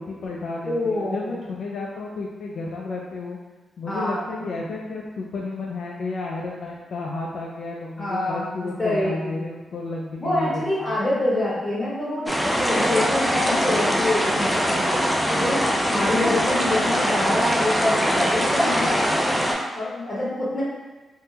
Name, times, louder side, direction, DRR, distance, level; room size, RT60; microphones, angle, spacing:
voice 1, 0.0-3.4 3.8-11.0, left 3 dB, 70° left, -3 dB, 0.3 m, -32 dB
voice 2, 0.6-1.3 3.9-4.6 8.0-9.4 10.2-12.3 12.6-14.8 15.4-19.0 19.7-20.6, left 1 dB, 30° left, -8 dB, 1.2 m, -26 dB
sound 1, 12.3-19.5, equal, ahead, 0.4 m, -22 dB
3.5 x 2.1 x 2.8 m, 1.2 s
cardioid pair, 115°, 0 cm